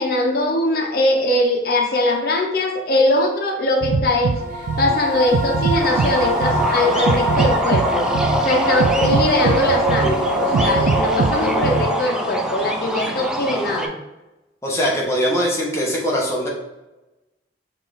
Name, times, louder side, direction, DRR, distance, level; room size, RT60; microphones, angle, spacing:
voice 1, 0.0-4.4 4.8-8.1 8.4-14.0, left 1 dB, 55° left, 1 dB, 0.8 m, -21 dB
sound 1, 3.8-11.9, right 4 dB, 80° right, 0.3 m, -23 dB
sound 2, 4.3-12.5, equal, 45° right, 0.7 m, -24 dB
sound 3, 5.8-13.9, equal, 5° right, 0.3 m, -25 dB
voice 2, 14.6-16.5, equal, 15° left, -3 dB, 1.0 m, -21 dB
5.3 x 2.6 x 3.9 m, 1.0 s
head